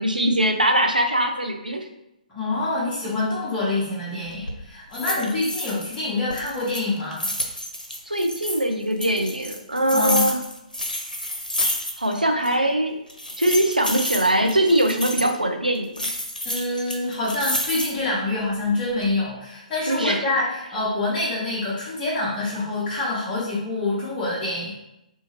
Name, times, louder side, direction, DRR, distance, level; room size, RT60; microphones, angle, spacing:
voice 1, 0.0-1.8 5.1-5.4 8.1-10.4 12.0-13.0 13.4-16.0 19.9-20.3, right 1 dB, 90° right, 3 dB, 0.4 m, -22 dB
voice 2, 2.3-7.3 9.9-10.3 16.4-24.7, left 2 dB, 15° left, -11 dB, 0.8 m, -26 dB
sound 1, 4.2-4.6 4.9-6.0 6.3-8.6 9.0-12.2 12.4-12.5 13.1-15.4 16.0-18.1 18.6-19.1, left 1 dB, 85° left, 0.5 m, -29 dB
2.7 x 2.4 x 2.8 m, 0.86 s
figure-of-eight pair, 125°, 4 cm